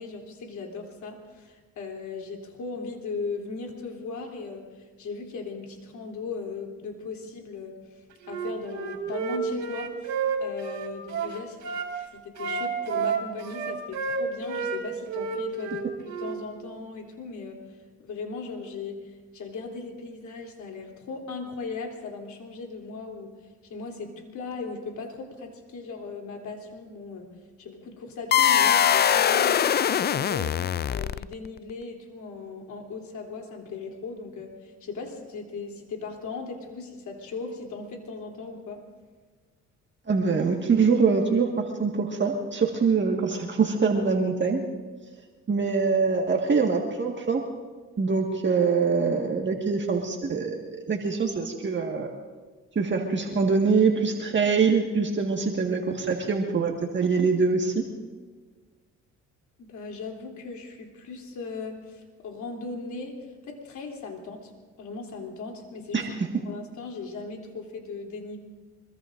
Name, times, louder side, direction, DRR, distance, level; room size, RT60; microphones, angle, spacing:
voice 1, 0.0-11.8 12.1-15.9 16.2-17.6 18.0-23.3 23.6-27.3 27.6-30.6 30.9-38.8 59.6-64.5 64.8-66.1 66.4-68.4, left 4 dB, 70° left, 2 dB, 3.3 m, -38 dB
Wind instrument woodwind instrument, 8.2-11.9 12.4-14.8 15.1-16.4, right 5 dB, 80° right, 3.1 m, -30 dB
sound 1, 28.3-31.5, left 9 dB, 35° left, 0.4 m, -22 dB
voice 2, 40.1-44.6 45.5-47.4 48.0-52.1 52.8-57.9 65.9-66.3, right 5 dB, 40° right, 1 dB, 1.7 m, -24 dB
24.5 x 22.5 x 2.6 m, 1.4 s
cardioid pair, 90°, 30 cm